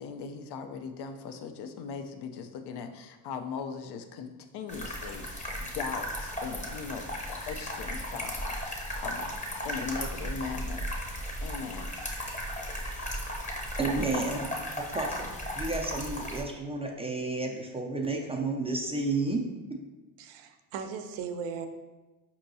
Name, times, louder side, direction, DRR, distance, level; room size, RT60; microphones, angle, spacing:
voice 1, 0.0-4.3 4.5-9.3 9.6-10.9 11.4-11.9, left 5 dB, 55° left, 7 dB, 0.5 m, -39 dB
sound 1, 4.7-16.4, equal, 15° left, 0.8 m, -35 dB
voice 2, 13.8-14.5 14.8-19.4, right 3 dB, 15° right, 0 dB, 0.4 m, -31 dB
voice 3, 20.2-21.7, right 6 dB, 70° right, 7 dB, 0.6 m, -37 dB
4.4 x 2.9 x 2.6 m, 1.2 s
supercardioid pair, 70°, 48 cm